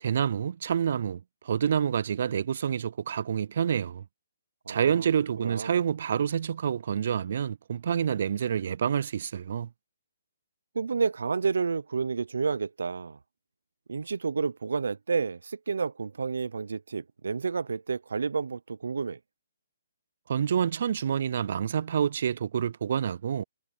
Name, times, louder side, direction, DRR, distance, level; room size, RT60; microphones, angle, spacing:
voice 1, 0.0-4.0 4.7-9.7 20.3-23.4, right 8 dB, 55° right, 0.3 m, -28 dB
voice 2, 4.7-5.1 5.4-5.8 10.7-13.2 13.9-19.2, right 5 dB, 80° right, 0.7 m, -30 dB
hypercardioid pair, 150°, 0 cm